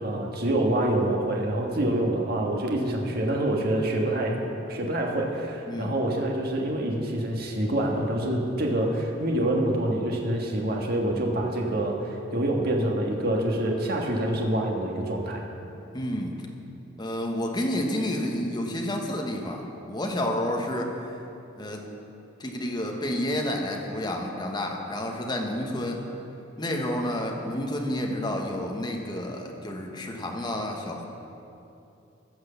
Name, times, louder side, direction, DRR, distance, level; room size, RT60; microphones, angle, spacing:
voice 1, 0.0-4.4 4.7-15.4, right 1 dB, 55° right, 0 dB, 1.5 m, -26 dB
voice 2, 15.9-16.4 17.0-20.9 21.6-21.8 22.4-26.0 26.6-31.1, left 1 dB, 20° left, 1 dB, 1.2 m, -30 dB
15.5 x 6.3 x 6.9 m, 2.8 s
head